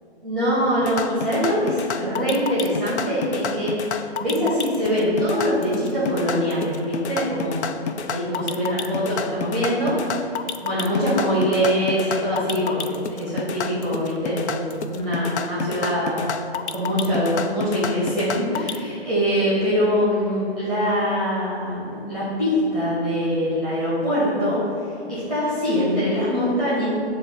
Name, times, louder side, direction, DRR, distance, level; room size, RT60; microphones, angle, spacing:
voice 1, 0.2-9.9 10.6-16.4 16.7-24.6 25.1-26.9, equal, ahead, -11 dB, 0.9 m, -23 dB
sound 1, 0.8-18.8, left 6 dB, 85° left, 0.5 m, -30 dB
7.2 x 2.9 x 5.5 m, 2.5 s
hypercardioid pair, 165°, 33 cm